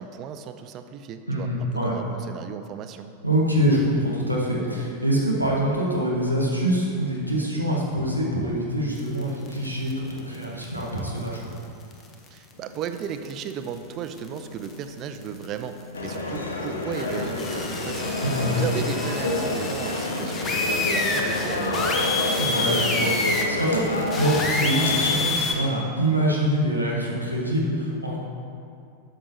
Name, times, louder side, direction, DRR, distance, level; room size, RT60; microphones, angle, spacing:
voice 1, 0.0-1.5 1.8-3.1 12.3-15.7 16.0-18.1 18.5-22.2, right 8 dB, 35° right, 8 dB, 0.4 m, -35 dB
voice 2, 1.3-2.0 3.2-11.4 18.2-18.5 22.4-28.2, right 1 dB, 90° left, -4 dB, 1.5 m, -25 dB
sound 1, 9.2-9.9 10.2-10.3 10.6-10.7 11.0-11.1 11.9-12.3 12.8-12.9 13.2-13.5 14.2-14.4 14.6-14.7 15.1-15.5 16.8-25.5, left 3 dB, 25° left, 0.9 m, -28 dB
sound 2, 9.3-24.7, left 1 dB, 55° left, 0.5 m, -44 dB
sound 3, 15.9-25.2, left 2 dB, 75° left, 0.8 m, -28 dB
12.0 x 6.5 x 2.8 m, 2.5 s
figure-of-eight pair, 90°, 0 cm